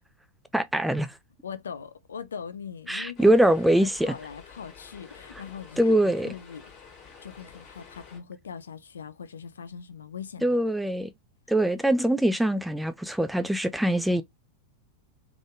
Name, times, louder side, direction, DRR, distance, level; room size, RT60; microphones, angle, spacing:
voice 1, 0.5-1.1 2.9-4.1 5.8-6.3 10.4-11.1 11.5-14.2, right 1 dB, 5° right, 0.4 m, -23 dB
voice 2, 1.4-3.3 3.7-6.0 6.2-6.9 7.2-10.5, left 7 dB, 70° left, 0.4 m, -40 dB
sound 1, 3.2-8.2, left 6 dB, 35° left, 2.2 m, -49 dB
3.5 x 3.4 x 2.4 m
figure-of-eight pair, 90°, 0 cm